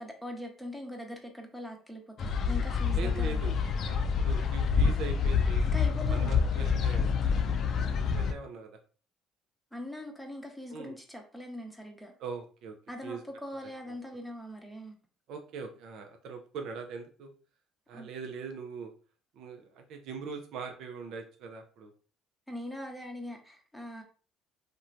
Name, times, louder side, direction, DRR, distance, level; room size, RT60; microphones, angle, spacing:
voice 1, 0.0-3.5 5.6-6.4 9.7-12.1 12.9-14.9 17.9-18.1 22.5-24.0, left 1 dB, ahead, 2 dB, 0.7 m, -41 dB
sound 1, 2.2-8.3, left 5 dB, 55° left, 0.3 m, -27 dB
voice 2, 2.9-3.6 3.8-5.7 6.1-7.1 7.8-8.7 10.7-10.9 12.2-12.7 13.0-13.2 15.3-17.3 17.9-18.9 19.3-21.9, right 5 dB, 65° right, 4 dB, 0.4 m, -41 dB
2.9 x 2.1 x 2.5 m, 0.39 s
hypercardioid pair, 70°, 0 cm